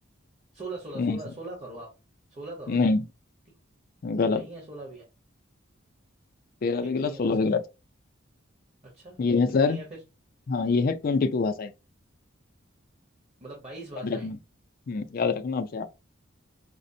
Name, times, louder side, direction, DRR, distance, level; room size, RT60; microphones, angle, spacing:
voice 1, 0.5-1.9 2.3-2.8 4.3-5.0 6.8-7.4 8.8-9.2 9.6-10.0 13.4-14.3, right 2 dB, 30° right, 0.9 m, -41 dB
voice 2, 2.7-3.1 4.0-4.5 6.6-7.6 9.2-9.8 10.5-11.7 14.0-14.4 14.9-15.9, left 4 dB, 45° left, 0.4 m, -25 dB
5.0 x 2.0 x 2.6 m
head